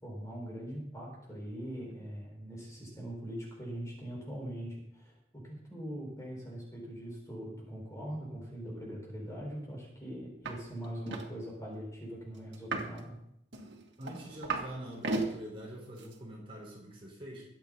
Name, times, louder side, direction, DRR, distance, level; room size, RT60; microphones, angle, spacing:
voice 1, 0.0-13.2, equal, 15° left, -2 dB, 5.2 m, -42 dB
sound 1, 10.4-10.6 10.8-11.3 12.5-13.0 13.5-14.7 15.0-15.3 16.0-16.1, right 3 dB, 85° right, 2.1 m, -35 dB
voice 2, 14.0-17.4, equal, 30° right, -4 dB, 4.5 m, -44 dB
23.0 x 8.7 x 4.1 m, 0.77 s
head